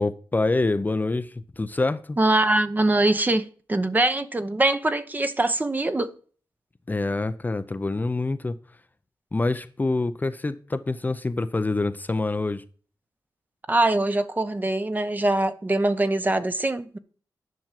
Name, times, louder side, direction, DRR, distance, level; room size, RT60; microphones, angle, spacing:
voice 1, 0.0-2.2 6.9-8.6 9.3-12.6, left 2 dB, 25° left, 0.6 m, -26 dB
voice 2, 2.2-6.1 13.7-17.0, right 2 dB, 25° right, 0.9 m, -23 dB
10.5 x 6.2 x 7.5 m
wide cardioid pair, 90°, 8 cm